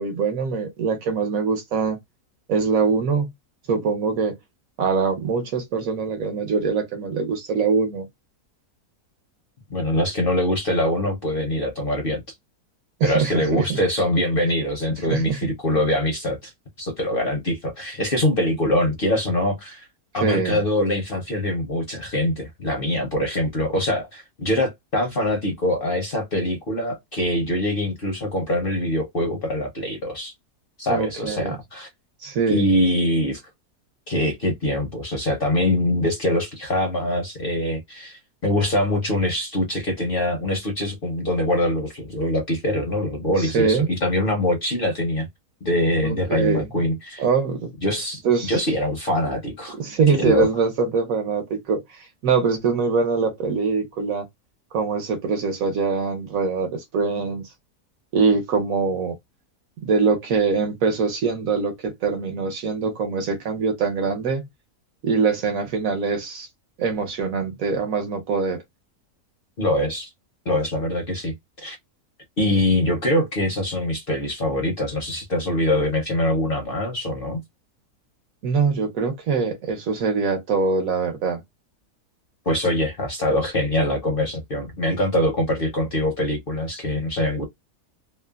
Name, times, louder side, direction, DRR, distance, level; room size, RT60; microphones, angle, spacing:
voice 1, 0.0-2.0 2.5-3.3 3.7-4.3 4.8-8.1 13.0-13.8 15.1-15.5 20.2-20.6 30.9-31.6 32.2-32.6 43.4-43.9 46.0-46.7 47.2-47.7 48.2-48.5 49.7-54.3 54.7-57.5 58.1-59.2 59.8-64.5 65.0-66.5 66.8-68.6 78.4-81.4, right 5 dB, 65° right, 1.2 m, -23 dB
voice 2, 9.7-12.2 13.0-16.5 16.8-19.9 20.1-30.3 30.8-31.9 32.5-33.4 34.1-45.3 45.6-47.2 47.8-49.8 50.1-50.5 69.6-70.1 70.5-71.8 72.4-77.4 82.5-87.5, left 1 dB, 50° left, 0.7 m, -23 dB
3.0 x 2.1 x 2.3 m
omnidirectional pair, 1.6 m